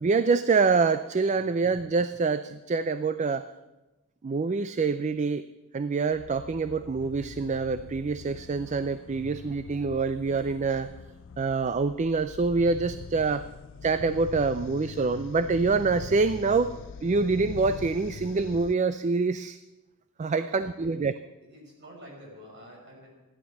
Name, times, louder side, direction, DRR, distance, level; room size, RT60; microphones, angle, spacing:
voice 1, 0.0-3.5 4.2-5.5 5.7-10.9 11.4-13.4 13.8-16.7 17.0-19.6 20.2-21.1, right 4 dB, 30° right, 12 dB, 0.4 m, -26 dB
voice 2, 1.3-1.6 13.1-13.4 20.3-21.1 21.4-23.1, equal, 55° right, -1 dB, 6.0 m, -49 dB
sound 1, 6.1-18.7, left 6 dB, 60° left, 0.4 m, -43 dB
15.0 x 11.0 x 7.1 m, 1.1 s
head